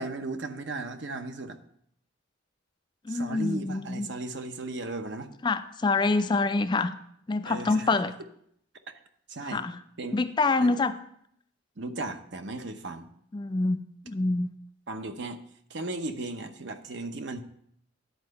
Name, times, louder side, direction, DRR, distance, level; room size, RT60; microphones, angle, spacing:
voice 1, 0.0-1.6 3.1-5.3 7.5-7.9 9.3-9.6 10.0-10.2 10.6-10.7 11.8-13.1 14.9-15.4 15.7-17.4, right 2 dB, 65° right, 7 dB, 0.8 m, -36 dB
voice 2, 3.1-4.1 5.4-6.9 7.3-8.1 9.5-9.8 10.1-10.9 13.3-13.8 14.1-14.5, left 3 dB, 25° left, 10 dB, 0.3 m, -26 dB
10.5 x 4.6 x 6.5 m, 0.69 s
head